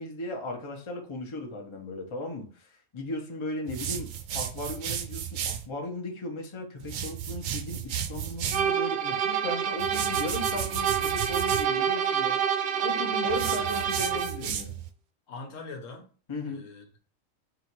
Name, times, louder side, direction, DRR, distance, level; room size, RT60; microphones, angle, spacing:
voice 1, 0.0-4.1 4.3-12.4 12.8-14.7 16.3-16.6, left 1 dB, 30° left, 0.7 m, -36 dB
sound 1, 3.7-5.7 6.8-8.7 9.8-11.7 13.3-14.9, right 8 dB, 90° right, 1.0 m, -34 dB
sound 2, 8.5-14.4, right 8 dB, 65° right, 0.7 m, -28 dB
voice 2, 13.2-14.7 15.3-16.1 16.5-17.0, left 3 dB, 80° left, 1.2 m, -43 dB
3.9 x 2.5 x 4.4 m
omnidirectional pair, 1.3 m